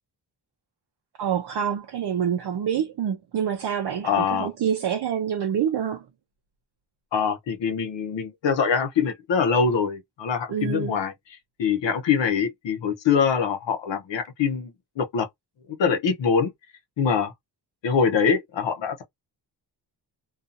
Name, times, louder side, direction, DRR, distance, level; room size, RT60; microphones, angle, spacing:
voice 1, 1.2-6.0 10.5-10.9, right 8 dB, 65° right, 0.6 m, -26 dB
voice 2, 4.0-4.5 7.1-11.1 11.6-15.3 15.7-16.5 17.0-17.3 17.8-19.0, left 6 dB, 85° left, 0.8 m, -24 dB
2.6 x 2.4 x 2.4 m
wide cardioid pair, 125°, 43 cm